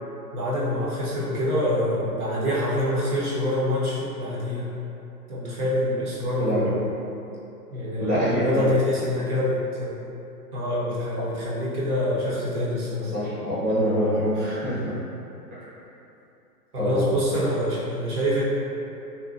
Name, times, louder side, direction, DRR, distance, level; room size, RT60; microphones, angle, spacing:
voice 1, 0.3-4.7 5.3-6.9 7.7-9.9 10.5-13.1 16.7-18.4, left 1 dB, 65° right, -8 dB, 0.9 m, -26 dB
voice 2, 6.4-6.7 8.0-8.7 13.1-14.9 15.5-15.6 16.8-17.1, equal, 15° right, -14 dB, 0.8 m, -25 dB
2.7 x 2.1 x 2.5 m, 2.8 s
figure-of-eight pair, 130°, 48 cm